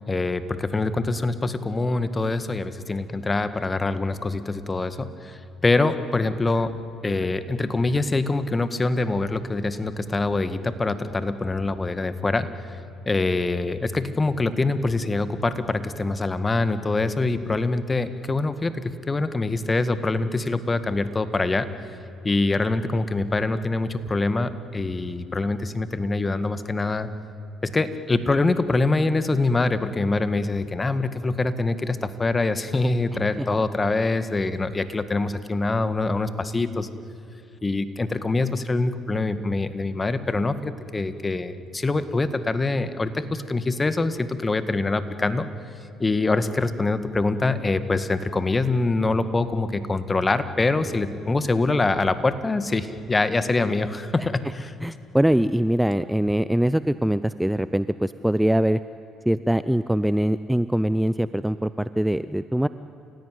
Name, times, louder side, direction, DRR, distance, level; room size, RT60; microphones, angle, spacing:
voice 1, 0.1-6.7 7.0-12.5 13.1-21.7 22.2-27.1 27.6-36.9 37.6-45.5 46.0-54.7, left 3 dB, 25° left, 12 dB, 1.8 m, -24 dB
voice 2, 54.8-58.8 59.3-62.7, right 1 dB, 5° right, 14 dB, 0.6 m, -22 dB
29.5 x 17.0 x 9.5 m, 2.8 s
hypercardioid pair, 60°, 0 cm